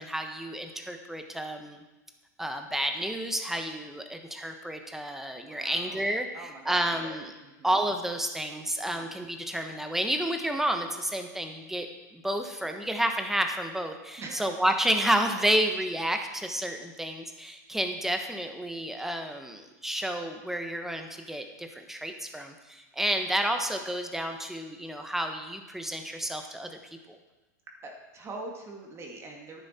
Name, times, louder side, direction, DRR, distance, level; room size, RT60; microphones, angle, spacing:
voice 1, 0.0-1.8 2.4-6.3 6.6-7.3 7.6-11.9 12.1-26.7 27.1-27.2, right 1 dB, 5° right, 5 dB, 1.2 m, -30 dB
voice 2, 5.4-6.0 6.3-7.7 8.9-9.3 14.2-14.5 27.8-29.6, right 2 dB, 30° right, 1 dB, 2.1 m, -43 dB
10.5 x 10.0 x 4.3 m, 1.1 s
hypercardioid pair, 110°, 10 cm